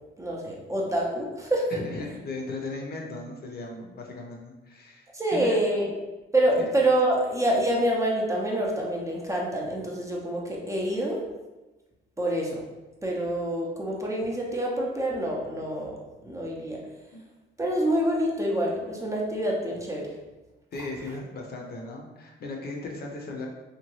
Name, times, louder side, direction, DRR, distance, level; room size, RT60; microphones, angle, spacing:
voice 1, 0.2-1.7 5.1-5.9 6.3-11.2 12.2-12.6 13.0-16.0 16.2-16.8 17.6-20.1, right 1 dB, 15° right, -3 dB, 0.6 m, -26 dB
voice 2, 1.7-5.0 5.3-5.6 6.6-6.7 17.1-17.2 20.7-23.5, left 2 dB, 50° left, 0 dB, 0.6 m, -36 dB
2.7 x 2.2 x 3.0 m, 1.1 s
cardioid pair, 90°, 20 cm